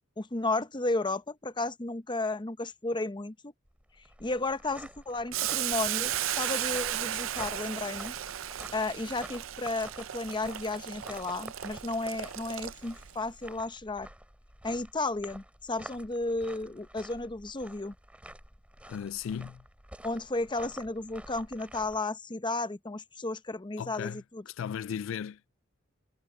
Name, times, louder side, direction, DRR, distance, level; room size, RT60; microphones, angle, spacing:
voice 1, 0.2-3.5 4.2-8.1 8.7-14.1 14.6-17.9 20.0-24.4, left 2 dB, 25° left, 0.8 m, -33 dB
sound 1, 3.7-22.0, right 1 dB, 5° right, 4.0 m, -49 dB
Boiling, 5.3-13.1, right 12 dB, 80° right, 0.6 m, -35 dB
voice 2, 18.9-19.6 23.8-25.4, left 8 dB, 70° left, 0.3 m, -36 dB
head